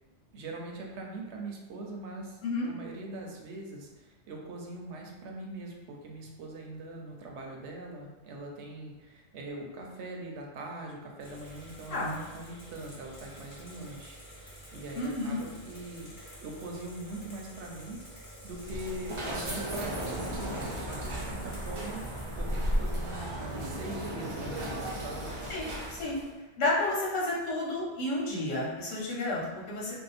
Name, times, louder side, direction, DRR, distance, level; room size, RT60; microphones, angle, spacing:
voice 1, 0.3-14.2 14.7-16.1 16.4-25.3, right 2 dB, 70° right, 0 dB, 0.8 m, -42 dB
sound 1, 11.2-23.9, equal, 30° left, 1.0 m, -49 dB
voice 2, 14.9-15.4 25.5-26.2 26.6-29.9, left 2 dB, 85° left, -5 dB, 1.2 m, -31 dB
sound 2, 18.4-26.3, equal, 50° right, 0.3 m, -35 dB
2.7 x 2.1 x 4.0 m, 1.2 s
omnidirectional pair, 1.3 m